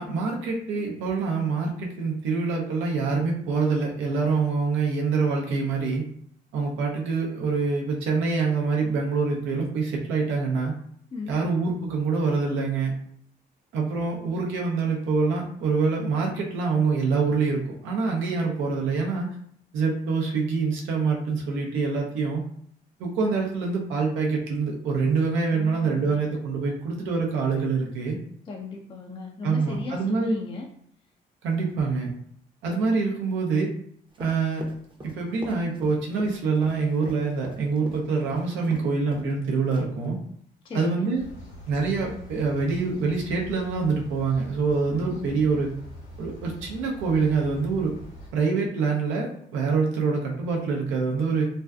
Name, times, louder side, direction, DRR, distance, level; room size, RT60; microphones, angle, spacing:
voice 1, 0.0-6.1 6.5-10.7 11.3-12.9 13.7-19.3 19.7-22.4 23.0-28.2 29.4-30.4 31.4-32.1 32.6-33.7 34.2-34.6 35.0-40.2 40.7-41.2 41.7-45.7 46.2-47.9 48.3-51.5, right 4 dB, 85° right, -1 dB, 0.6 m, -25 dB
voice 2, 11.1-11.4 25.5-26.2 28.5-30.7 40.6-41.1 44.9-45.4, left 3 dB, 25° left, 1 dB, 0.4 m, -37 dB
Run, 34.1-38.9 39.1-39.3 39.7-40.1, right 1 dB, 25° right, 0.6 m, -41 dB
sound 1, 41.1-48.3, equal, 85° left, 0.8 m, -44 dB
2.5 x 2.3 x 2.3 m, 0.65 s
supercardioid pair, 50°, 20 cm